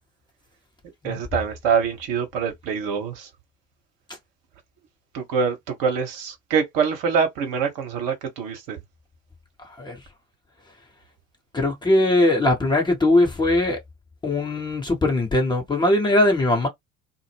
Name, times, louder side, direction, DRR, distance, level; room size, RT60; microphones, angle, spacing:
voice 1, 1.0-3.3 5.1-8.8, right 6 dB, 50° right, 1.0 m, -25 dB
voice 2, 9.6-10.0 11.5-13.8 14.2-16.7, left 2 dB, 10° left, 0.7 m, -20 dB
2.0 x 2.0 x 3.2 m
figure-of-eight pair, 65°, 40 cm